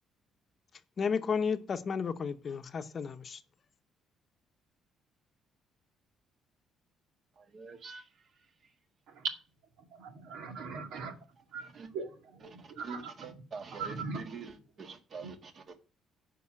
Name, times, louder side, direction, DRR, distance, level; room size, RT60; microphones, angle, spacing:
voice 1, 1.0-3.4, left 6 dB, 40° left, 0.8 m, -32 dB
voice 2, 7.4-8.1 11.7-11.9 12.6-15.8, right 4 dB, 45° right, 1.5 m, -45 dB
voice 3, 9.8-11.2 11.5-13.4 13.7-14.2 15.2-15.3, right 5 dB, 85° right, 1.9 m, -40 dB
9.8 x 5.5 x 7.5 m
cardioid pair, 115°, 0 cm